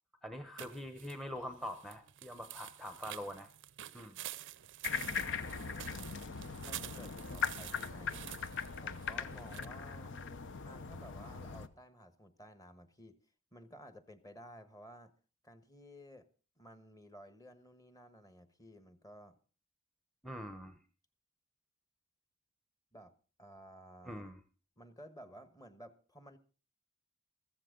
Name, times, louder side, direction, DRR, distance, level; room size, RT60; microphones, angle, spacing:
voice 1, 0.2-3.5 3.9-4.5 20.2-20.8 24.0-24.4, equal, ahead, 8 dB, 0.9 m, -44 dB
sound 1, 0.6-9.7, right 13 dB, 60° right, 0.6 m, -49 dB
sound 2, 4.8-11.7, left 6 dB, 60° left, 0.9 m, -40 dB
voice 2, 5.2-6.0 6.6-8.4 8.7-10.2 10.6-13.2 13.5-15.1 15.4-16.2 16.6-19.4 22.9-23.1 23.4-24.3 24.8-26.4, equal, 15° left, 10 dB, 1.4 m, -55 dB
15.0 x 14.5 x 3.8 m, 0.37 s
head